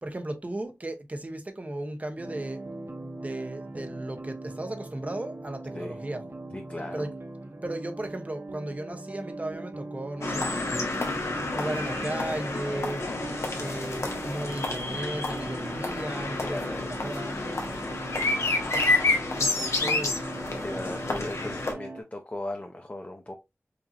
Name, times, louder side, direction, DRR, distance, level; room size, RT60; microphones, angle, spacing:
voice 1, 0.0-2.6 3.0-6.3 6.9-7.1 7.6-10.9 11.5-13.0 13.6-17.4 19.4-20.3 20.7-20.8 21.1-21.3, right 1 dB, 30° right, 0.8 m, -36 dB
sound 1, 2.2-22.0, right 2 dB, 65° right, 1.0 m, -41 dB
voice 2, 6.5-7.1 16.5-17.0 20.6-23.4, left 1 dB, 30° left, 0.7 m, -37 dB
sound 2, 10.2-21.7, left 2 dB, 85° left, 1.1 m, -29 dB
5.0 x 2.7 x 2.8 m
wide cardioid pair, 60°, 5 cm